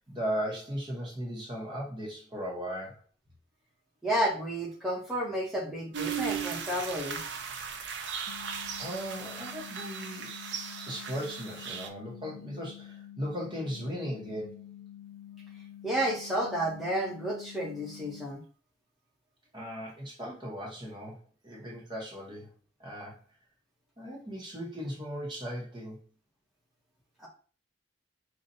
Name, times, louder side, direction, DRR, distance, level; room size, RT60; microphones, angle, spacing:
voice 1, 0.0-3.0 8.0-8.5 8.8-10.3 10.9-14.6 19.5-21.2 21.4-22.5 22.8-23.2 24.0-26.0, equal, 25° right, -3 dB, 1.0 m, -37 dB
voice 2, 4.0-7.2 15.8-18.4 27.2-27.3, right 1 dB, ahead, -5 dB, 1.1 m, -31 dB
sound 1, 5.9-11.9, right 7 dB, 70° right, 0.6 m, -37 dB
sound 2, 8.3-18.3, left 11 dB, 90° left, 0.4 m, -48 dB
4.0 x 2.4 x 4.1 m, 0.39 s
head